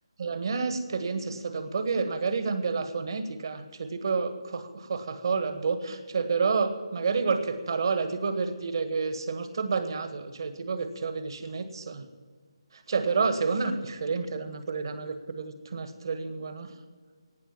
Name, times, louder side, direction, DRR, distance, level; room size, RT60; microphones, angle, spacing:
voice 1, 0.2-12.0 12.9-16.7, right 4 dB, 55° right, 9 dB, 1.7 m, -29 dB
18.0 x 6.4 x 9.3 m, 1.5 s
figure-of-eight pair, 150°, 3 cm